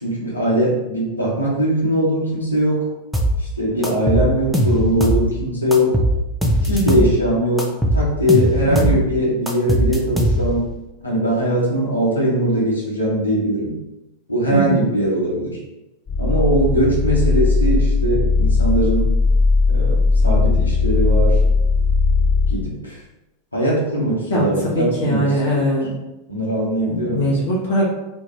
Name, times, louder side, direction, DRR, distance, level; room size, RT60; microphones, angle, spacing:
voice 1, 0.0-2.9 3.4-6.0 6.6-10.7 11.0-13.8 14.3-15.6 16.2-19.0 19.7-21.4 22.5-23.0 23.5-25.3 25.5-25.6 26.3-27.4, right 1 dB, 85° left, -5 dB, 0.9 m, -20 dB
sound 1, 3.1-3.4 3.8-5.3 5.7-7.1 7.6-9.0 9.5-10.7, equal, 5° right, 0.4 m, -19 dB
voice 2, 6.7-7.0 8.6-8.9 14.5-14.8 24.3-26.0 26.9-27.8, equal, 60° left, -5 dB, 0.6 m, -21 dB
sound 2, 16.1-22.5, left 4 dB, 30° left, 1.2 m, -17 dB
2.5 x 2.2 x 3.0 m, 0.96 s
figure-of-eight pair, 90°, 0 cm